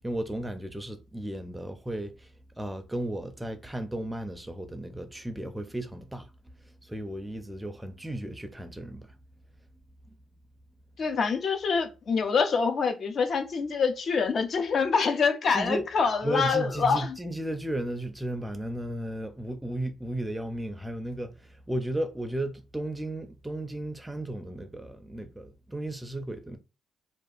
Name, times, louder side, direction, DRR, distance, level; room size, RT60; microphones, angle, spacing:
voice 1, 0.0-6.3 6.6-9.1 15.5-15.9 16.2-26.6, right 1 dB, 10° right, 0.4 m, -34 dB
voice 2, 11.0-17.2, left 5 dB, 50° left, 0.5 m, -26 dB
2.7 x 2.3 x 2.4 m
cardioid pair, 90°, 0 cm